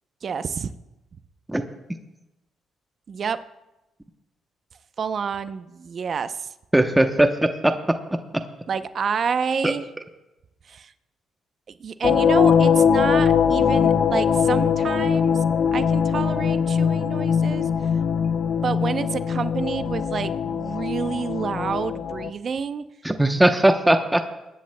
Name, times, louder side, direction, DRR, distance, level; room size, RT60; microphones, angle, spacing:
voice 1, 0.2-0.7 3.1-3.4 5.0-6.5 8.7-9.9 10.6-10.9 11.7-15.4 15.7-17.7 18.6-22.8, right 6 dB, 50° right, 12 dB, 0.6 m, -28 dB
voice 2, 6.7-7.8 9.6-9.7 23.0-24.2, right 1 dB, 10° right, 6 dB, 0.8 m, -19 dB
sound 1, 12.0-22.3, left 7 dB, 60° left, 0.6 m, -21 dB
23.0 x 10.0 x 2.2 m, 0.98 s
cardioid pair, 90°, 0 cm